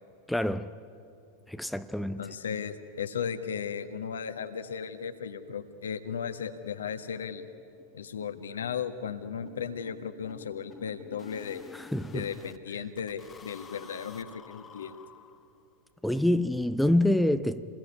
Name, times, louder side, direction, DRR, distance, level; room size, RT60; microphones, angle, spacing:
voice 1, 0.3-0.7 1.5-2.3 11.7-12.3 16.0-17.6, left 1 dB, ahead, 0.7 m, -26 dB
voice 2, 2.2-7.5 7.9-11.6 12.1-15.0, left 7 dB, 65° left, 1.5 m, -36 dB
sound 1, 5.7-5.8 6.1-6.2 6.5-6.6 7.0-7.1 7.4-12.6 13.0-15.7, left 5 dB, 20° left, 1.3 m, -51 dB
28.5 x 20.5 x 9.9 m
figure-of-eight pair, 90°, 0 cm